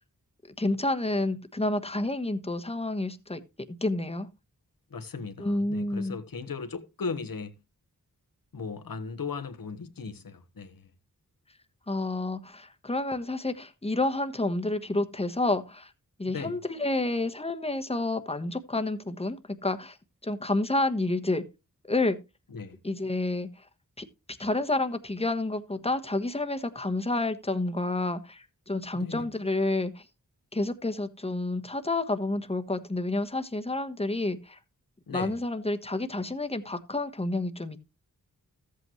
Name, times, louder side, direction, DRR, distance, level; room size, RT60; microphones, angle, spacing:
voice 1, 0.6-3.4 3.7-4.3 5.4-6.1 11.9-15.9 16.2-20.0 20.2-21.4 21.8-22.2 22.8-23.5 24.0-30.0 30.5-34.6 35.1-37.8, left 2 dB, 15° left, 1.3 m, -29 dB
voice 2, 4.9-7.5 8.5-10.9 16.2-16.6 22.5-22.8 28.9-29.3 35.1-35.3, left 5 dB, 70° left, 1.3 m, -37 dB
14.0 x 8.3 x 3.1 m
cardioid pair, 50°, 36 cm